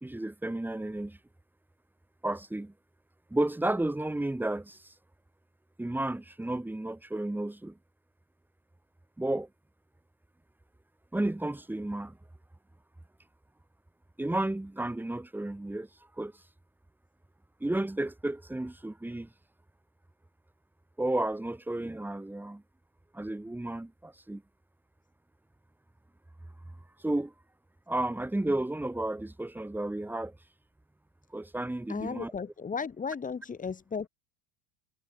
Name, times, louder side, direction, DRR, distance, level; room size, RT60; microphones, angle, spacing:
voice 1, 0.0-1.2 2.2-2.7 3.3-4.9 5.8-7.7 9.2-9.5 11.1-12.2 14.2-15.9 16.2-16.3 17.6-19.3 21.0-22.6 23.1-24.4 27.0-27.3 27.9-30.3 31.3-32.3, right 1 dB, 5° right, 1.7 m, -32 dB
voice 2, 31.9-34.1, left 5 dB, 25° left, 2.1 m, -35 dB
supercardioid pair, 85°, 32 cm